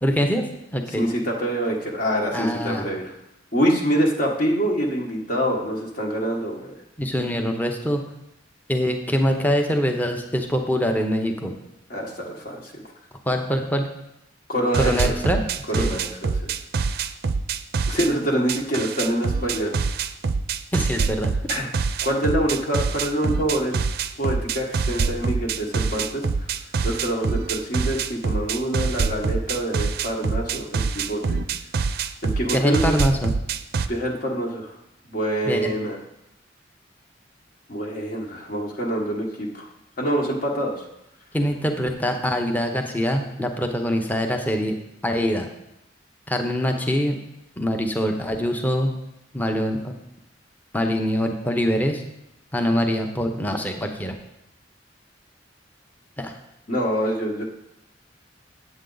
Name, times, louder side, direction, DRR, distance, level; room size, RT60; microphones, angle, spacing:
voice 1, 0.0-1.1 2.3-2.9 7.0-8.0 8.7-11.5 13.2-13.9 14.8-15.4 15.7-15.9 20.7-21.3 32.5-33.3 35.4-35.7 41.3-44.8 45.0-45.5 46.3-47.1 47.6-48.9 49.3-49.9 50.7-52.0 52.5-54.1 56.2-56.4, equal, 10° left, 4 dB, 0.7 m, -24 dB
voice 2, 1.0-3.1 3.5-6.8 11.9-12.7 14.5-15.1 15.7-16.5 17.9-19.7 21.5-21.7 22.0-23.7 24.2-26.5 26.8-31.4 32.2-33.0 33.9-34.8 35.1-36.0 37.7-39.7 40.0-40.9 56.7-57.4, right 1 dB, 50° left, -2 dB, 1.3 m, -25 dB
sound 1, 14.7-18.1 18.5-33.9, right 4 dB, 55° right, 0.4 m, -25 dB
8.2 x 8.1 x 3.9 m, 0.83 s
head